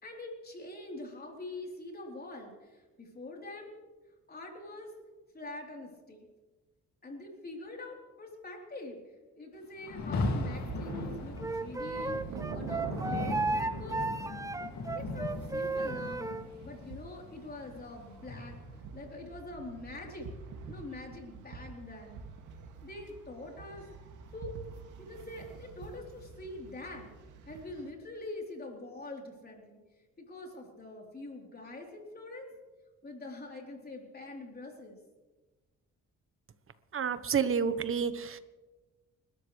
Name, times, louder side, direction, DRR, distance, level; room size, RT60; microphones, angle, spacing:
voice 1, 0.0-3.7 4.3-4.9 5.3-6.3 7.0-9.0 9.3-14.0 14.9-16.3 16.6-18.6 18.9-20.3 20.7-22.2 22.8-23.9 24.3-24.5 25.0-27.1 27.5-29.8 30.2-32.5 33.0-35.0, left 2 dB, 30° left, 0 dB, 3.8 m, -44 dB
Rain, 9.8-18.9, left 3 dB, 65° left, 2.5 m, -39 dB
sound 1, 10.5-27.9, right 4 dB, 85° right, 2.3 m, -45 dB
Wind instrument woodwind instrument, 11.4-16.5, right 3 dB, 10° right, 0.6 m, -34 dB
voice 2, 36.9-38.4, right 6 dB, 45° right, 12 dB, 1.2 m, -29 dB
29.5 x 13.0 x 3.3 m, 1.2 s
cardioid pair, 90°, 30 cm